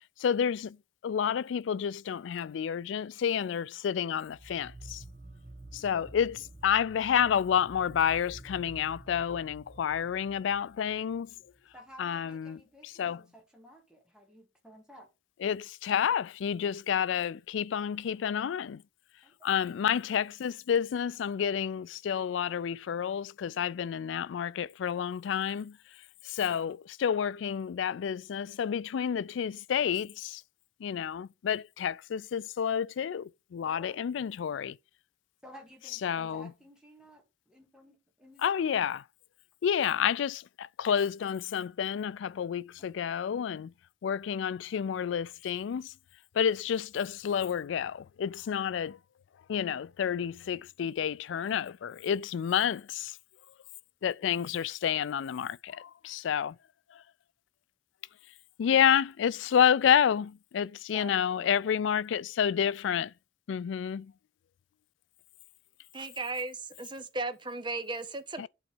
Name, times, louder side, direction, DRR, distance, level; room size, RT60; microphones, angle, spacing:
voice 1, 0.2-0.8 1.0-5.0 5.7-11.3 12.0-12.6 13.0-13.2 15.4-18.8 19.4-25.8 26.2-30.4 30.8-34.8 36.0-36.5 38.4-39.0 39.6-43.7 44.0-45.9 46.3-49.0 49.5-53.2 54.0-56.6 56.9-57.0 58.6-63.1 63.5-64.1 68.4-68.5, left 8 dB, 80° left, 0.3 m, -29 dB
sound 1, 4.2-11.6, right 2 dB, 40° right, 1.2 m, -50 dB
voice 2, 11.7-15.1 18.0-18.3 19.2-19.4 33.6-34.0 35.4-38.8 42.8-43.1 60.9-61.7, right 1 dB, 5° right, 1.9 m, -53 dB
voice 3, 65.9-68.5, right 3 dB, 25° right, 0.9 m, -36 dB
8.0 x 4.0 x 6.2 m
head